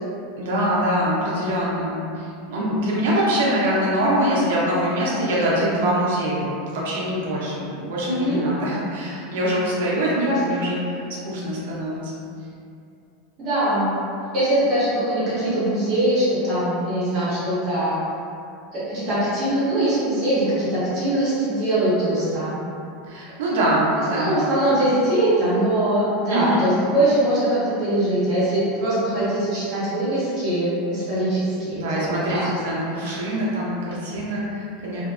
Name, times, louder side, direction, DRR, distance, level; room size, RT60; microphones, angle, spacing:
voice 1, 0.4-6.5 6.7-10.8 11.2-12.1 23.1-24.4 26.3-26.7 31.7-35.0, right 1 dB, 75° right, -6 dB, 0.6 m, -23 dB
voice 2, 8.0-8.5 10.3-10.4 13.4-13.9 14.3-18.0 18.7-22.5 23.9-32.5, right 1 dB, 30° right, -12 dB, 1.2 m, -22 dB
2.6 x 2.2 x 2.3 m, 2.5 s
supercardioid pair, 180°, 0 cm